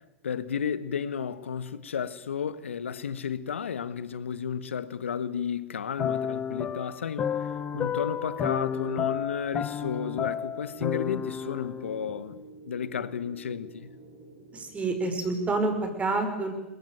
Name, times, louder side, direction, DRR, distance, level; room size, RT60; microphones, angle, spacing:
voice 1, 0.2-7.5 7.7-13.9, left 7 dB, 80° left, 1.4 m, -33 dB
sound 1, 6.0-12.3, left 8 dB, 25° left, 0.8 m, -32 dB
sound 2, 7.4-16.0, right 2 dB, 65° right, 7.0 m, -50 dB
voice 2, 14.5-16.5, right 3 dB, 20° right, 5.6 m, -28 dB
22.0 x 21.5 x 9.2 m
hypercardioid pair, 105°, 7 cm